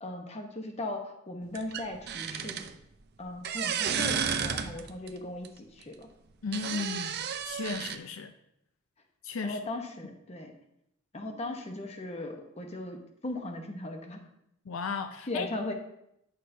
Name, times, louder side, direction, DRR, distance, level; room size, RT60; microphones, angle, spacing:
voice 1, 0.0-2.7 3.2-6.1 9.4-10.5 11.1-14.2 15.3-15.7, left 2 dB, 30° left, 3 dB, 0.9 m, -38 dB
sound 1, 1.5-2.7 3.4-5.1 5.4-5.5 6.5-8.0, right 7 dB, 50° right, 0.5 m, -32 dB
voice 2, 6.4-8.3 9.2-9.6 14.7-15.5, left 4 dB, 70° left, 7 dB, 0.5 m, -35 dB
10.0 x 6.4 x 2.7 m, 0.79 s
head